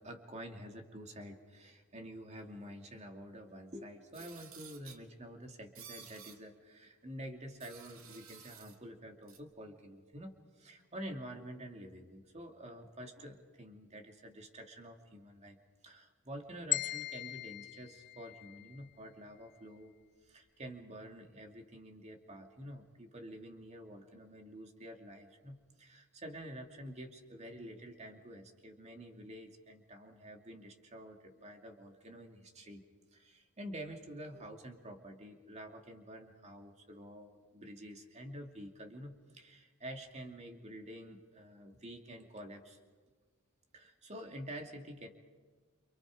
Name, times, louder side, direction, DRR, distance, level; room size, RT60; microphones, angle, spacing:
voice 1, 0.0-15.6 15.8-19.9 20.2-32.8 33.1-42.8 43.7-45.1, equal, 30° right, 3 dB, 2.6 m, -48 dB
sound 1, 4.1-5.0 5.7-6.4 7.6-8.8 9.3-9.4, right 7 dB, 70° right, 2.4 m, -53 dB
sound 2, 16.7-18.9, left 17 dB, 55° left, 1.2 m, -39 dB
29.5 x 28.0 x 4.9 m, 1.5 s
head